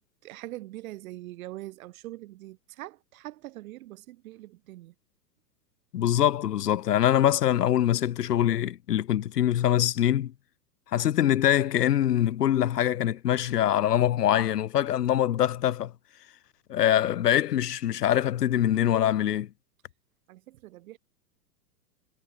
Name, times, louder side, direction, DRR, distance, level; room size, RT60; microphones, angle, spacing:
voice 1, 0.0-4.9 20.3-21.0, right 17 dB, 55° right, 4.9 m, -43 dB
voice 2, 5.9-10.3 10.9-15.9 16.7-19.5, left 11 dB, 70° left, 1.6 m, -24 dB
hypercardioid pair, 110°, 49 cm